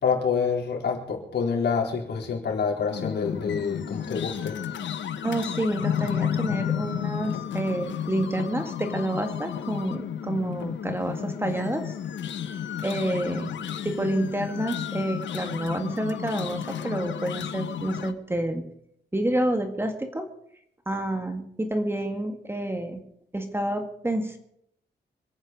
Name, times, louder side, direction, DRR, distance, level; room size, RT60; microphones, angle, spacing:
voice 1, 0.0-4.6, left 6 dB, 65° left, 0 dB, 4.1 m, -27 dB
sound 1, 2.9-18.1, left 9 dB, 80° left, 1.0 m, -32 dB
voice 2, 5.2-11.9 12.8-13.5 13.8-18.7 19.1-20.3 20.9-23.0 23.3-24.4, right 1 dB, 10° right, 5 dB, 1.8 m, -29 dB
26.5 x 9.0 x 5.3 m, 0.70 s
wide cardioid pair, 120°, 19 cm